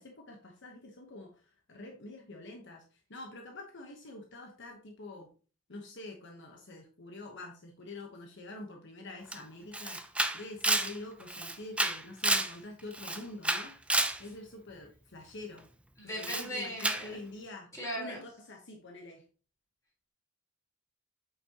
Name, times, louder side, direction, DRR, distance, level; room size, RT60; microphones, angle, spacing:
voice 1, 0.0-5.3 5.7-10.0 10.3-13.7 14.2-15.7 16.0-19.2, left 2 dB, 60° left, 2 dB, 1.1 m, -46 dB
Camera, 9.3-9.4 9.7-12.5 12.9-14.2 16.2-16.5 16.8-17.1, right 2 dB, 5° right, 0.5 m, -30 dB
voice 2, 16.0-17.2 17.7-18.2, equal, 15° left, -4 dB, 4.3 m, -38 dB
8.5 x 5.6 x 2.9 m, 0.38 s
head